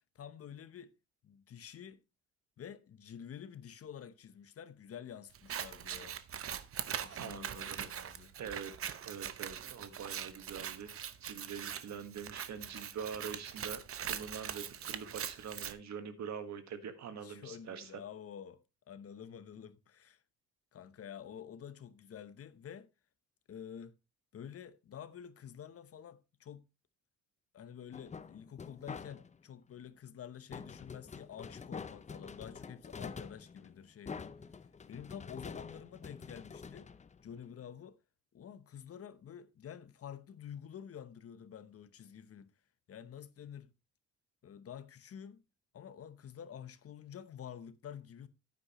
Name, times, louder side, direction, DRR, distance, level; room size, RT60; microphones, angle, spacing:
voice 1, 0.1-0.9 1.2-2.0 2.6-6.2 7.0-8.3 17.2-18.6 18.9-20.2 20.7-22.9 23.5-23.9 24.3-26.7 27.5-34.3 34.9-36.9 37.2-38.0 38.3-42.5 42.9-43.7 44.4-45.4 45.7-48.3, left 8 dB, 50° left, 0.9 m, -49 dB
Scissors, 5.3-15.7, right 9 dB, 50° right, 0.8 m, -42 dB
voice 2, 7.1-7.9 8.4-8.7 9.0-10.9 11.2-13.8 14.1-18.0, right 7 dB, 65° right, 1.6 m, -44 dB
sound 1, 27.9-29.5 30.5-37.6, left 5 dB, 25° left, 0.6 m, -47 dB
9.7 x 9.4 x 3.0 m
cardioid pair, 90°, 30 cm